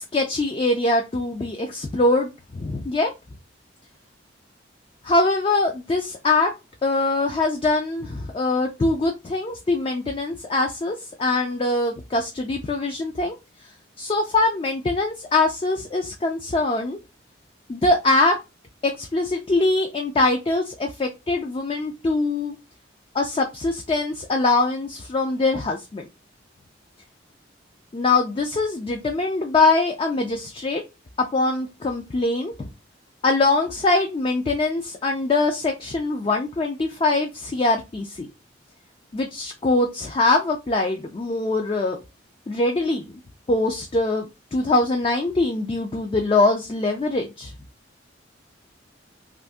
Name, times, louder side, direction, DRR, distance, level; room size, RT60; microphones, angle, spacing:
voice 1, 0.0-3.1 5.0-6.5 6.8-13.4 14.0-17.0 17.7-18.4 18.8-22.6 23.1-26.1 27.9-30.8 31.3-32.7 33.2-38.3 39.1-42.0 42.5-43.0 43.5-47.5, left 2 dB, 25° left, 0.3 m, -23 dB
2.5 x 2.5 x 3.4 m
head